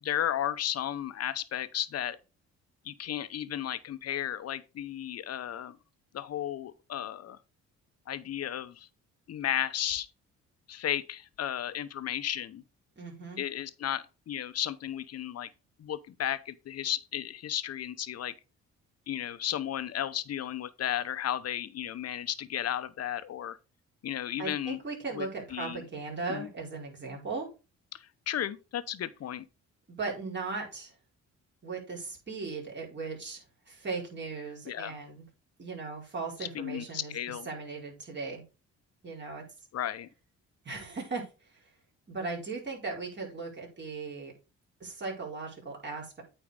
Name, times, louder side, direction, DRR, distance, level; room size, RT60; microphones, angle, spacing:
voice 1, 0.0-2.2 2.8-5.8 6.1-7.4 8.1-8.9 9.3-10.1 10.7-12.6 13.4-15.5 15.8-18.3 19.1-23.6 24.0-24.8 25.1-25.8 26.3-26.5 27.9-29.5 34.7-35.0 36.5-37.5 39.7-40.1, left 11 dB, 55° left, 0.8 m, -34 dB
voice 2, 13.0-13.4 24.4-27.5 29.9-30.9 31.6-35.2 35.6-38.4 39.0-39.4 40.6-41.7 42.1-44.3 44.8-46.2, right 4 dB, 35° right, 4.4 m, -38 dB
8.8 x 4.6 x 4.9 m
cardioid pair, 90°, 30 cm